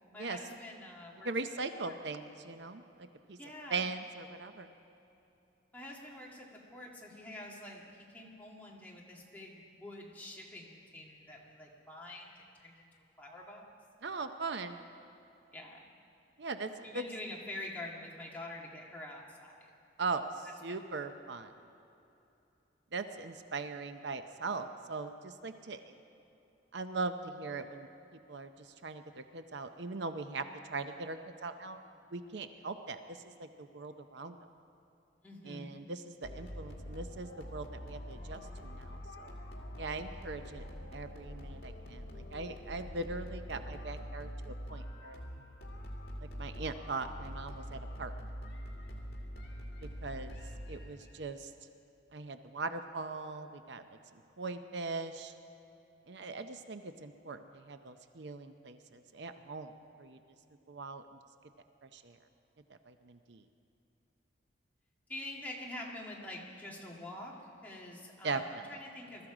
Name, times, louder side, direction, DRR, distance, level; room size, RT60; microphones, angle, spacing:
voice 1, 0.1-1.3 1.8-2.0 3.4-3.9 5.7-12.9 13.2-13.7 15.5-15.9 16.8-19.7 20.7-20.8 35.2-35.7 65.1-67.3 67.6-69.3, left 1 dB, 10° left, -3 dB, 2.0 m, -46 dB
voice 2, 1.2-3.4 3.7-4.7 14.0-14.8 16.4-17.0 20.0-21.5 22.9-25.9 26.7-27.9 28.3-30.4 30.7-31.8 32.1-34.4 35.4-39.3 39.8-40.6 40.9-45.2 46.4-48.1 50.0-50.4 50.7-51.5 52.1-53.8 54.1-55.3 56.1-59.7 60.0-60.2 60.7-61.0 61.8-62.2 62.9-63.4 68.2-68.6, right 3 dB, 65° right, 8 dB, 0.6 m, -40 dB
sound 1, 36.2-51.2, equal, 50° left, 2.3 m, -44 dB
21.5 x 13.5 x 5.0 m, 2.9 s
head